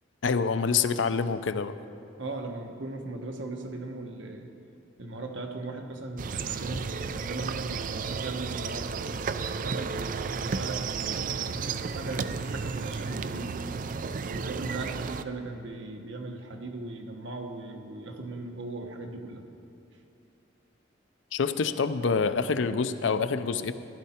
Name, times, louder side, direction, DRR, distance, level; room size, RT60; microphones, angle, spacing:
voice 1, 0.2-1.7 21.3-23.7, left 5 dB, 85° left, 11 dB, 0.5 m, -26 dB
voice 2, 2.2-4.5 5.0-8.9 9.6-13.6 14.3-19.4, right 2 dB, 85° right, 3 dB, 1.2 m, -38 dB
sound 1, 6.2-15.2, right 5 dB, 45° right, 0.4 m, -33 dB
15.0 x 11.5 x 4.4 m, 2.6 s
head